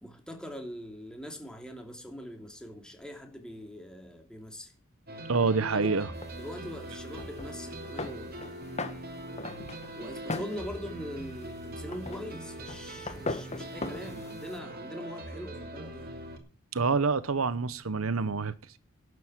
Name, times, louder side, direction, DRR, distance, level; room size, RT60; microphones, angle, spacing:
voice 1, 0.0-4.7 5.7-6.0 6.3-8.9 9.9-16.1, equal, 5° left, 3.0 m, -42 dB
sound 1, 5.1-16.4, right 1 dB, 50° right, 2.6 m, -42 dB
voice 2, 5.3-6.1 16.7-18.8, right 4 dB, 85° right, 0.9 m, -27 dB
sound 2, 6.1-14.6, left 2 dB, 35° left, 1.5 m, -41 dB
12.0 x 8.2 x 8.1 m
head